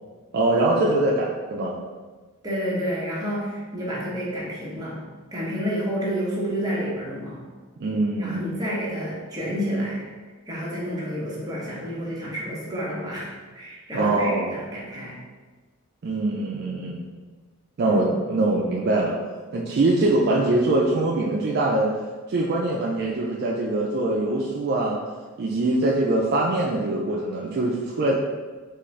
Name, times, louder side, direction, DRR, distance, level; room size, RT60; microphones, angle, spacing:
voice 1, 0.3-1.7 7.8-8.4 13.9-14.5 16.0-17.1 17.8-19.1 19.5-21.9 22.3-25.0 25.4-28.1, right 2 dB, 50° right, -3 dB, 0.3 m, -23 dB
voice 2, 2.4-5.0 5.3-7.5 8.2-10.1 10.5-15.2 17.8-18.1, equal, 20° right, -6 dB, 0.8 m, -29 dB
3.7 x 2.5 x 3.1 m, 1.4 s
head